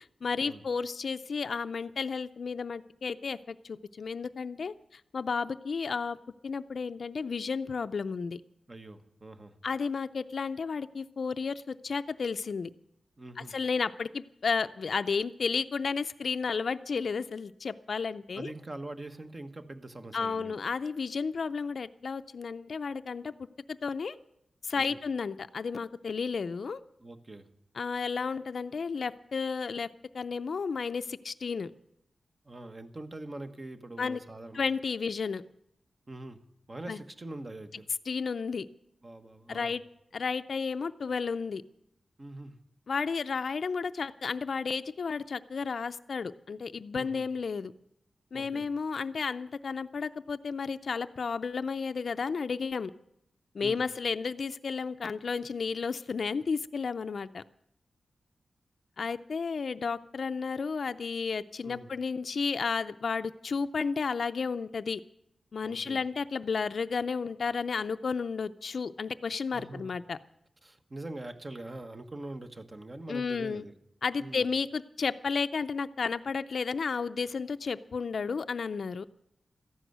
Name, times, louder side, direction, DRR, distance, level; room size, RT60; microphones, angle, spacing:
voice 1, 0.0-6.2 6.4-8.4 9.6-12.7 13.5-18.5 20.1-24.2 24.6-26.8 27.8-29.9 30.1-31.7 34.0-34.2 34.5-35.4 36.9-37.0 38.1-38.7 39.5-39.8 40.1-41.6 42.9-47.7 48.3-52.9 53.5-57.4 59.0-65.0 65.5-70.2 73.1-73.6 74.0-79.0, left 5 dB, 65° left, 11 dB, 0.5 m, -32 dB
voice 2, 8.7-9.6 13.2-13.5 18.3-20.6 24.7-25.0 27.0-27.5 32.4-34.6 36.1-36.4 36.7-37.9 39.0-39.7 42.2-42.6 46.9-47.3 48.3-48.7 53.6-53.8 61.6-61.9 65.6-66.0 69.5-69.9 70.6-73.7 74.2-74.5, right 2 dB, 35° right, 7 dB, 1.4 m, -43 dB
14.5 x 11.0 x 8.0 m, 0.78 s
cardioid pair, 70°, 0 cm